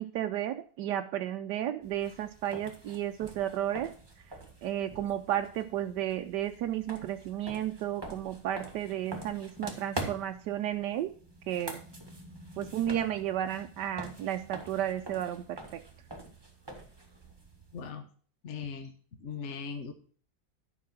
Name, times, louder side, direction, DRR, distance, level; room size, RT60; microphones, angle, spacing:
voice 1, 0.0-3.9 4.6-11.1 11.5-11.8 12.6-15.8, right 11 dB, 80° right, 6 dB, 1.3 m, -33 dB
sound 1, 1.8-17.9, right 1 dB, 15° right, 1.6 m, -45 dB
voice 2, 17.7-18.0 18.4-18.9 19.2-19.9, left 6 dB, 45° left, 6 dB, 1.3 m, -39 dB
11.0 x 5.6 x 5.9 m, 0.43 s
omnidirectional pair, 1.8 m